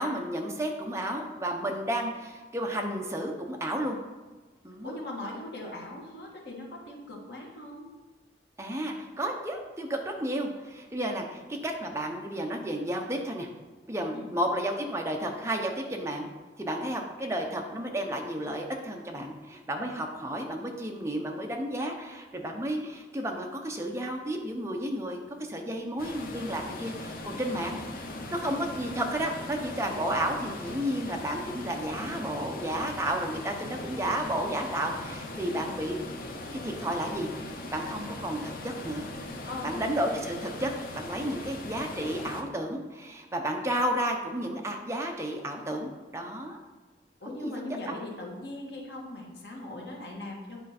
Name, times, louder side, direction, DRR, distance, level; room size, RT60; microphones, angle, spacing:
voice 1, 0.0-4.0 4.6-4.9 8.6-13.5 13.9-16.3 16.6-36.0 36.6-37.3 37.7-39.1 39.6-46.6 47.4-47.5 47.9-48.0, right 1 dB, 15° right, 2 dB, 0.8 m, -32 dB
voice 2, 4.8-7.9 14.1-14.3 39.5-39.9 47.2-50.6, left 2 dB, 70° left, -2 dB, 1.6 m, -40 dB
sound 1, 26.0-42.4, left 2 dB, 55° left, 0.9 m, -40 dB
9.0 x 4.4 x 4.2 m, 1.3 s
head